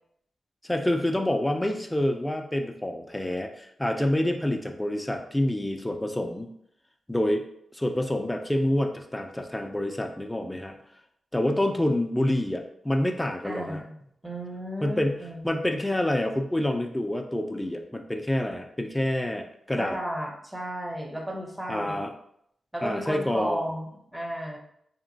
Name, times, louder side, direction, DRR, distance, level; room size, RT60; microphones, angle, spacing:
voice 1, 0.6-6.5 7.1-7.5 7.7-10.8 11.3-13.8 14.8-20.0 21.7-22.1 22.8-23.7, left 1 dB, 10° left, 4 dB, 0.3 m, -27 dB
voice 2, 13.4-13.9 14.2-15.6 19.8-22.0 22.7-24.6, equal, 10° right, 1 dB, 0.7 m, -34 dB
2.9 x 2.1 x 2.7 m, 0.72 s
cardioid pair, 65°, 0 cm